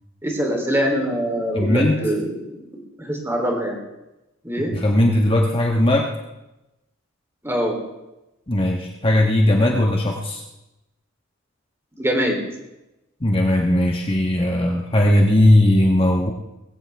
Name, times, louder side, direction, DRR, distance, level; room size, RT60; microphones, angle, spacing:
voice 1, 0.2-3.8 4.4-4.7 7.4-7.8 12.0-12.4, equal, 10° right, 1 dB, 3.3 m, -23 dB
voice 2, 1.5-2.0 4.7-6.1 8.5-10.4 13.2-16.3, left 1 dB, 25° left, 0 dB, 1.3 m, -18 dB
21.0 x 16.0 x 3.5 m, 0.96 s
head